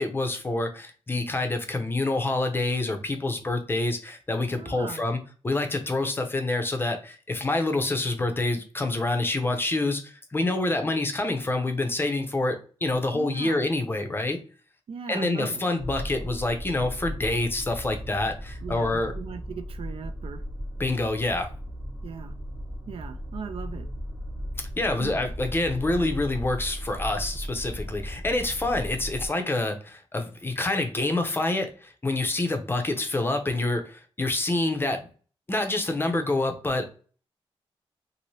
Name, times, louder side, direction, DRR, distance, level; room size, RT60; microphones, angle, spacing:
voice 1, 0.0-14.4 15.1-19.1 20.8-21.5 24.6-35.1 35.5-36.9, left 2 dB, 20° left, 6 dB, 0.6 m, -27 dB
voice 2, 4.6-5.0 13.1-13.6 14.9-15.7 18.6-20.4 22.0-22.3 22.9-23.9 25.0-25.2, right 6 dB, 70° right, 8 dB, 0.4 m, -38 dB
sound 1, 15.8-29.3, equal, 25° right, 1.0 m, -36 dB
2.7 x 2.6 x 3.0 m, 0.37 s
wide cardioid pair, 130°, 10 cm